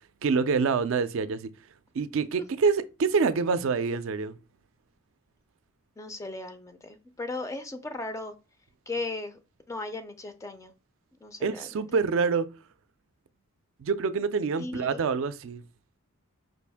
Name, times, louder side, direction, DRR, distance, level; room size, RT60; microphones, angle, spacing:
voice 1, 0.2-1.5 1.9-4.4 11.4-12.5 13.8-15.6, right 5 dB, 60° right, 0.4 m, -26 dB
voice 2, 6.0-8.3 8.9-9.4 9.7-10.7 11.2-11.9 14.6-15.0, left 2 dB, 15° left, 0.4 m, -36 dB
5.2 x 2.5 x 3.4 m
head